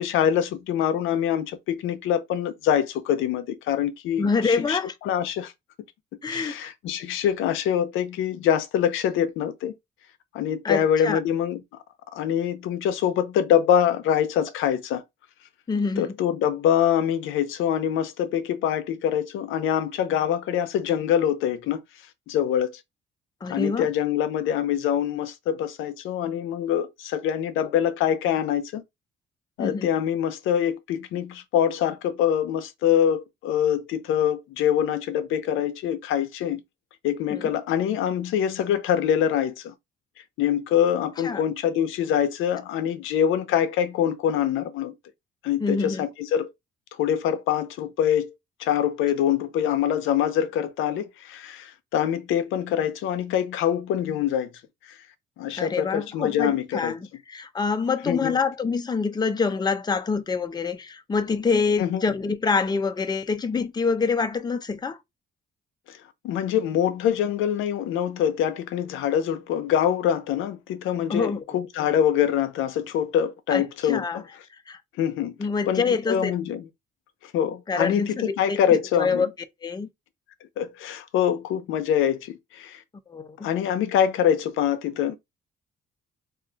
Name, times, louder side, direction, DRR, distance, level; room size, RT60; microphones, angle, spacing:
voice 1, 0.0-4.8 5.0-5.5 6.3-9.7 10.3-11.6 12.1-15.0 16.0-21.8 22.3-22.8 23.5-28.8 29.6-36.6 37.0-39.7 40.4-44.9 45.4-46.5 47.0-48.3 48.6-54.5 55.4-56.9 58.1-58.3 61.8-62.0 65.9-66.0 66.2-74.2 75.0-75.3 75.7-76.6 77.2-79.3 80.6-82.8 83.4-85.1, left 9 dB, 90° left, 0.5 m, -24 dB
voice 2, 4.2-4.9 6.2-6.7 10.6-11.2 15.7-16.2 23.4-23.9 29.6-29.9 37.3-37.5 41.2-41.4 45.6-46.0 55.6-65.0 71.1-71.6 73.5-74.2 74.7-74.8 75.4-76.3 77.7-78.6 79.0-79.3 79.6-79.9 83.1-83.5, left 4 dB, 20° left, 0.5 m, -26 dB
2.4 x 2.3 x 3.8 m
cardioid pair, 90°, 20 cm